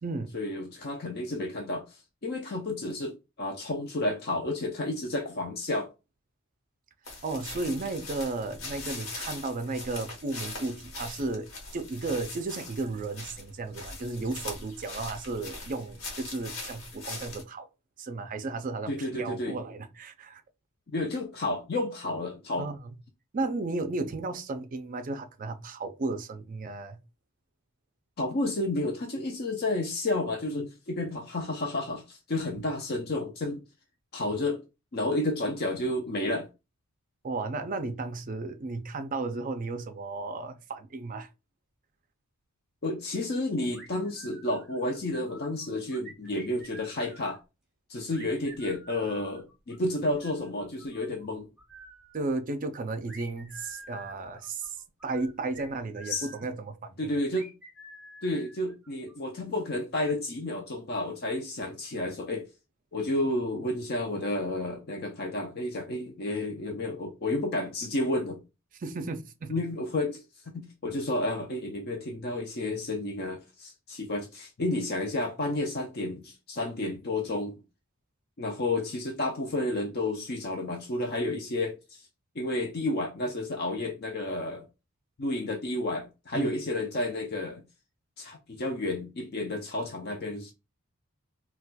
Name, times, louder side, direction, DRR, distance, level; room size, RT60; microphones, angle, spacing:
voice 1, 0.3-5.9 18.9-19.6 20.9-22.7 28.2-33.6 34.1-34.6 34.9-36.5 42.8-47.4 47.9-51.5 56.1-56.3 57.0-57.5 58.2-62.5 62.9-68.4 69.5-70.2 70.5-77.6 78.4-82.0 82.4-84.6 85.2-87.6 88.2-90.5, left 2 dB, 45° left, 0.5 m, -31 dB
sound 1, 7.1-17.4, left 3 dB, 60° left, 1.1 m, -41 dB
voice 2, 7.2-17.7 18.0-20.4 22.6-22.9 23.3-27.0 37.2-41.3 52.1-54.8 55.0-57.1 68.8-69.6 86.3-86.5, right 3 dB, 35° right, 0.4 m, -34 dB
sound 2, 43.7-45.0 45.3-47.4 48.1-51.3 51.6-52.3 53.1-56.5 57.3-59.1, right 2 dB, 5° right, 1.1 m, -50 dB
4.0 x 2.3 x 2.2 m
head